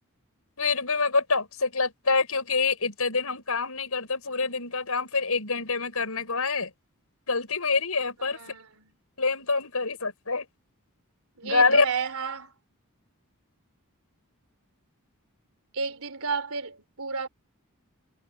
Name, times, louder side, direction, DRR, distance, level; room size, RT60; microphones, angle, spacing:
voice 1, 0.6-6.7 7.3-8.4 9.2-10.4 11.4-11.8, left 4 dB, 80° left, 6.1 m, -26 dB
voice 2, 8.2-8.9 11.4-12.5 15.7-17.3, right 5 dB, 85° right, 3.6 m, -32 dB
head